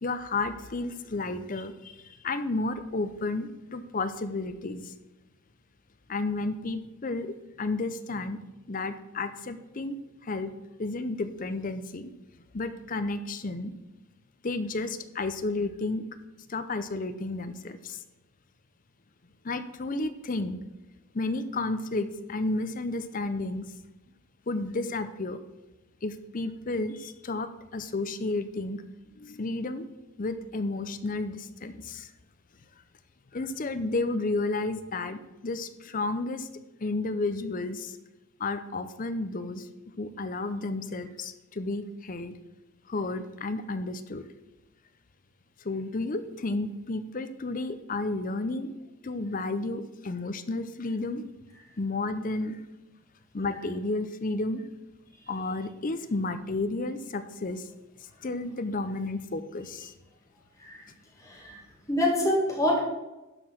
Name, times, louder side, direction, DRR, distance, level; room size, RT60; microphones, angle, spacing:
voice 1, 0.0-4.9 6.1-8.4 8.7-10.0 10.2-10.5 10.8-12.1 12.5-13.7 14.4-16.1 16.5-18.0 19.4-20.6 21.1-23.7 24.5-25.4 26.0-28.8 29.2-29.9 30.2-32.1 33.3-36.5 36.8-38.0 38.4-39.7 40.0-42.4 42.9-44.2 45.6-48.7 49.0-51.2 51.8-52.6 53.3-54.6 55.3-57.7 58.2-59.9, left 2 dB, 40° left, 11 dB, 0.6 m, -32 dB
voice 2, 61.2-61.6 61.9-62.8, left 1 dB, 15° left, -2 dB, 2.1 m, -26 dB
12.0 x 4.8 x 5.8 m, 1.0 s
head